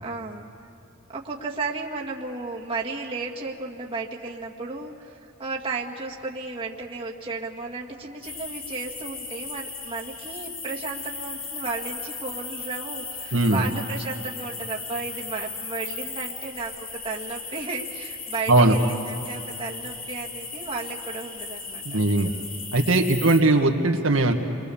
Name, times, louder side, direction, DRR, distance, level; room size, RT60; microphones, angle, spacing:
voice 1, 0.0-0.5 1.1-21.8 23.0-23.3, right 3 dB, 25° right, -3 dB, 1.9 m, -34 dB
sound 1, 8.2-23.4, left 4 dB, 85° left, 3.0 m, -37 dB
voice 2, 13.3-13.6 18.5-18.7 21.9-22.3 22.7-24.3, right 2 dB, 80° right, 2 dB, 1.7 m, -19 dB
29.0 x 23.0 x 7.1 m, 2.9 s
head